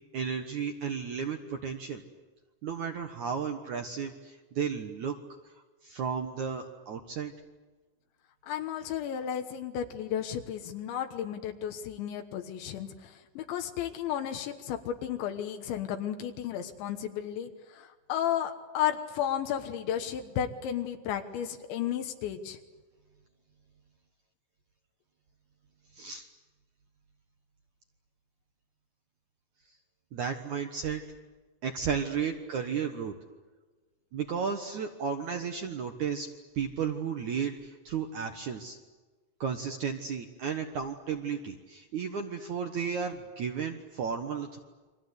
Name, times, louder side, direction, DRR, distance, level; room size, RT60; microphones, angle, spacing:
voice 1, 0.1-2.0 2.6-5.2 5.8-7.3 25.9-26.3 30.1-31.0 31.6-33.1 34.1-36.3 36.6-38.8 39.4-44.6, right 6 dB, 65° right, 5 dB, 1.9 m, -33 dB
voice 2, 8.4-22.6, left 10 dB, 85° left, 6 dB, 3.6 m, -33 dB
29.5 x 24.0 x 8.2 m, 1.3 s
omnidirectional pair, 5.1 m